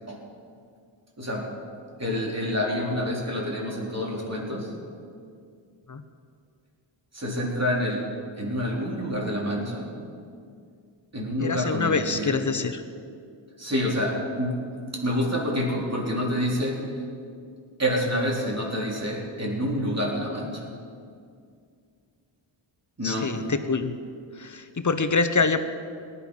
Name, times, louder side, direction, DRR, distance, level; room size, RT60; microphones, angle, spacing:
voice 1, 1.2-1.5 2.0-4.7 7.1-8.1 8.4-9.9 11.1-12.4 13.6-14.7 14.9-17.0 17.8-20.8 23.0-23.4, equal, 30° right, -2 dB, 3.5 m, -28 dB
voice 2, 11.4-12.8 23.0-24.0 24.4-25.6, left 4 dB, 40° left, 10 dB, 1.0 m, -25 dB
18.5 x 11.0 x 5.6 m, 2.3 s
wide cardioid pair, 70°, 48 cm